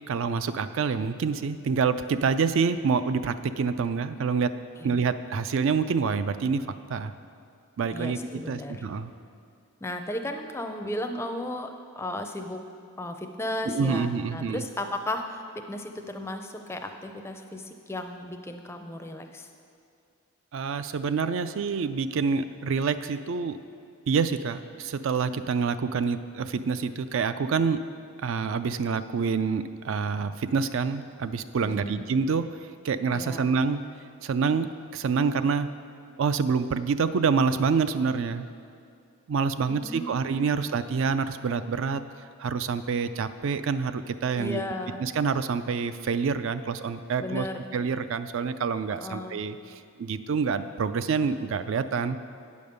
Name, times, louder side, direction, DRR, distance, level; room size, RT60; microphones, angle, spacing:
voice 1, 0.1-4.5 4.8-6.6 6.9-7.1 7.8-8.2 8.5-9.1 13.7-14.6 20.5-23.6 24.1-27.8 28.2-32.5 32.8-33.8 34.2-35.7 36.2-38.5 39.3-42.0 42.4-44.6 45.0-47.5 47.7-49.6 50.0-52.2, right 5 dB, 60° right, 12 dB, 0.3 m, -27 dB
voice 2, 7.9-8.8 9.8-12.6 13.0-15.4 15.7-19.5 31.6-32.1 33.1-33.5 39.7-40.5 44.4-45.0 47.2-47.6 48.9-49.4, left 1 dB, 10° left, 5 dB, 0.4 m, -35 dB
9.3 x 5.2 x 6.6 m, 2.4 s
head